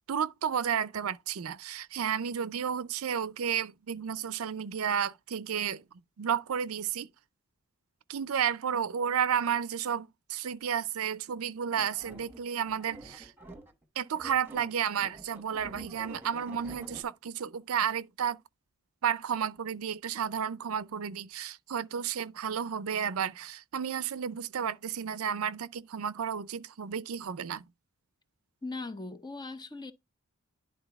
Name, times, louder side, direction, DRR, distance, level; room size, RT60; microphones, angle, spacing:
voice 1, 0.1-5.8 6.2-7.1 8.1-13.3 14.0-18.4 19.0-27.6, right 8 dB, 80° right, 0.5 m, -32 dB
sound 1, 11.8-13.8 14.1-17.0, right 1 dB, 10° right, 1.2 m, -48 dB
voice 2, 28.6-29.9, left 3 dB, 20° left, 0.6 m, -39 dB
11.0 x 3.8 x 3.4 m
head